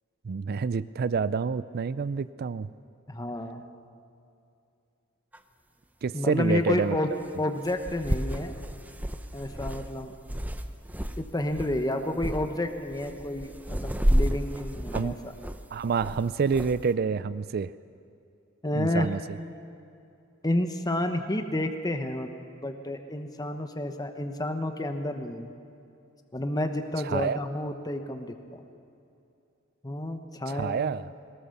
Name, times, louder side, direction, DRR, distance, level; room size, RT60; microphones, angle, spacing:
voice 1, 0.2-2.7 6.0-7.0 14.9-15.2 15.7-17.7 18.7-19.4 27.0-27.4 30.5-31.1, right 5 dB, 50° right, 16 dB, 0.4 m, -28 dB
voice 2, 3.1-3.6 6.1-7.1 7.4-8.6 9.3-10.1 11.2-15.3 18.6-19.1 20.4-22.3 22.6-25.5 26.3-28.6 29.8-30.8, left 1 dB, 20° left, 6 dB, 1.0 m, -30 dB
sound 1, 5.3-5.4 7.2-7.3 7.7-11.2 11.5-11.8 12.2-12.4 12.9-16.8, equal, 10° right, 0.8 m, -30 dB
22.0 x 19.0 x 7.1 m, 2.6 s
head